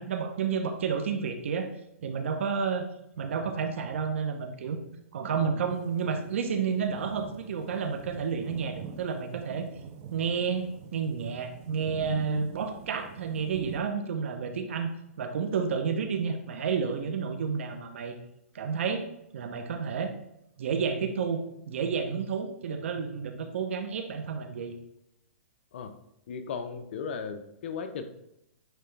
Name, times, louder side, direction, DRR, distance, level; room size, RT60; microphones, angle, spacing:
voice 1, 0.0-1.7 2.0-2.9 3.2-4.8 5.1-9.7 10.1-14.9 15.2-18.1 18.5-19.1 19.3-20.1 20.6-24.8, right 6 dB, 60° right, 7 dB, 0.9 m, -30 dB
sound 1, 5.7-13.8, right 7 dB, 25° right, 0.5 m, -45 dB
voice 2, 26.3-28.0, left 6 dB, 50° left, 8 dB, 0.7 m, -36 dB
9.2 x 3.3 x 3.3 m, 0.81 s
hypercardioid pair, 160°, 8 cm